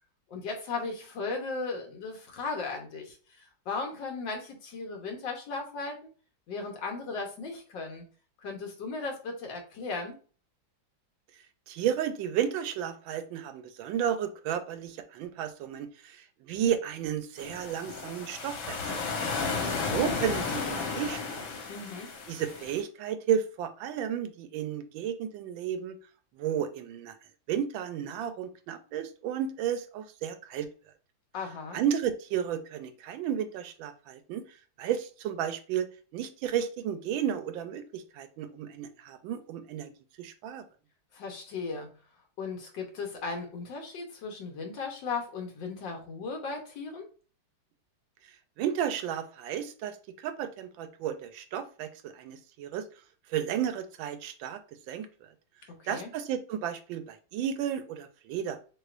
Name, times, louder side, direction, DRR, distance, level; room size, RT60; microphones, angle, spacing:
voice 1, 0.3-6.0 6.5-8.0 8.4-10.2 21.7-22.1 31.3-31.8 41.1-41.9 42.4-47.1 55.7-56.1, left 4 dB, 70° left, 2 dB, 1.7 m, -36 dB
voice 2, 11.7-18.9 19.9-21.5 22.3-26.0 26.3-27.1 27.5-30.7 31.7-34.4 34.8-39.9 40.2-40.6 48.6-52.8 53.3-54.6 54.9-55.1 55.9-58.6, right 9 dB, 80° right, 9 dB, 1.4 m, -33 dB
sound 1, 17.4-22.8, left 4 dB, 85° left, 1.7 m, -33 dB
6.3 x 2.4 x 2.5 m, 0.38 s
omnidirectional pair, 2.1 m